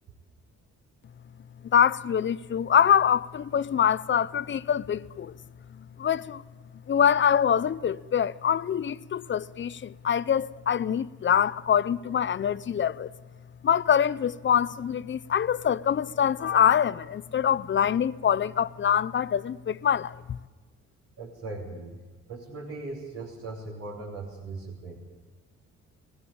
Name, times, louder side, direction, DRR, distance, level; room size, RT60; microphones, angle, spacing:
voice 1, 1.7-5.3 6.0-6.4 6.9-13.1 13.6-20.4, left 8 dB, 40° left, 0.7 m, -24 dB
voice 2, 21.2-22.0 22.3-25.0, right 3 dB, 60° right, 3.7 m, -39 dB
19.5 x 16.0 x 8.6 m
cardioid pair, 90°, 30 cm